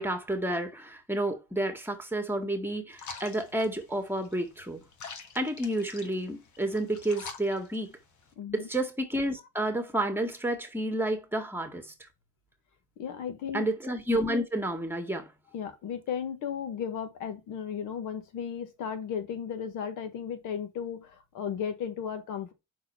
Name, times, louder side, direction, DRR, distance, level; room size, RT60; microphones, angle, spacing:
voice 1, 0.0-4.9 5.4-7.9 8.5-12.1 13.5-15.3, right 1 dB, 5° right, 1.8 m, -30 dB
sound 1, 2.9-8.3, left 5 dB, 75° left, 1.7 m, -46 dB
voice 2, 8.4-8.7 13.0-13.7 15.5-22.5, left 8 dB, 90° left, 1.6 m, -35 dB
5.5 x 4.3 x 4.8 m
cardioid pair, 90°, 30 cm